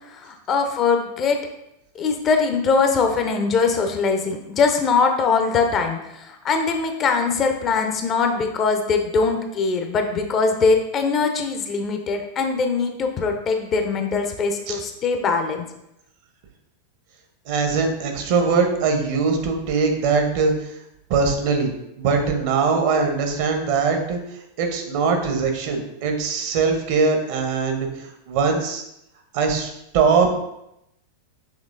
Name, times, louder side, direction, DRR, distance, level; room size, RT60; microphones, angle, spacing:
voice 1, 0.1-1.4 2.0-15.6, left 4 dB, 30° left, 5 dB, 0.5 m, -22 dB
voice 2, 17.5-20.5 21.1-21.7 22.0-24.2 24.6-27.9 28.3-28.8 29.3-30.3, right 5 dB, 50° right, 4 dB, 0.8 m, -21 dB
6.3 x 3.1 x 2.5 m, 0.84 s
figure-of-eight pair, 90°, 0 cm